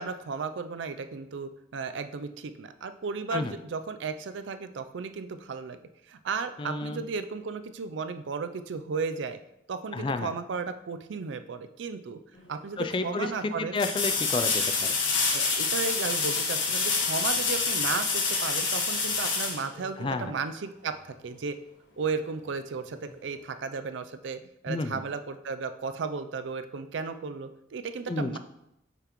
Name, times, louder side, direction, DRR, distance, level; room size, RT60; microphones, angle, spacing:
voice 1, 0.0-5.8 6.1-9.4 9.7-12.2 12.5-13.8 15.3-21.6 22.0-28.4, right 4 dB, 75° right, 10 dB, 0.4 m, -34 dB
voice 2, 6.6-7.0 9.9-10.3 12.8-14.9 20.0-20.3 24.7-25.0 28.1-28.3, left 3 dB, 25° left, 10 dB, 0.3 m, -31 dB
sound 1, 12.4-12.5 13.8-20.4 23.2-23.3, left 4 dB, 85° left, 1.3 m, -27 dB
6.6 x 5.8 x 3.0 m, 0.84 s
head